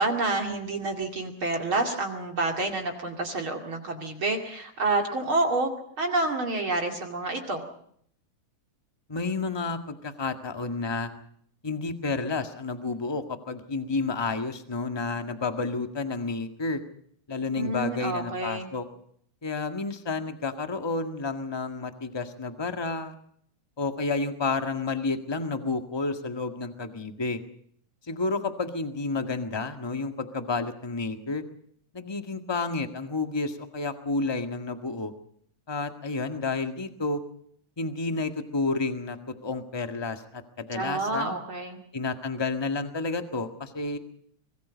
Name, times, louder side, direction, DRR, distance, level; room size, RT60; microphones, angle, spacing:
voice 1, 0.0-5.7 6.0-7.6 17.5-18.7 40.7-41.8, right 2 dB, 45° right, 3 dB, 3.1 m, -28 dB
voice 2, 9.1-11.1 11.6-16.8 17.3-18.9 19.4-23.2 23.8-27.4 28.1-31.4 31.9-35.1 35.7-37.2 37.8-39.2 39.4-41.4 41.9-44.0, left 3 dB, 15° left, 7 dB, 1.1 m, -30 dB
24.5 x 22.0 x 5.2 m, 0.65 s
omnidirectional pair, 3.5 m